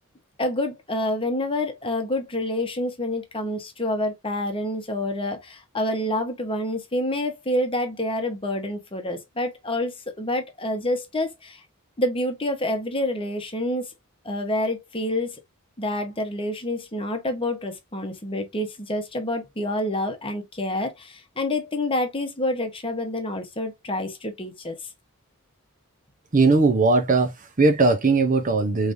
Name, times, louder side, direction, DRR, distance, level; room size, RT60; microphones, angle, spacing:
voice 1, 0.4-11.6 12.0-13.9 14.2-15.4 15.8-24.8, left 1 dB, 25° left, 1.0 m, -27 dB
voice 2, 26.3-28.9, right 3 dB, 35° right, 0.7 m, -19 dB
5.1 x 3.2 x 2.6 m
head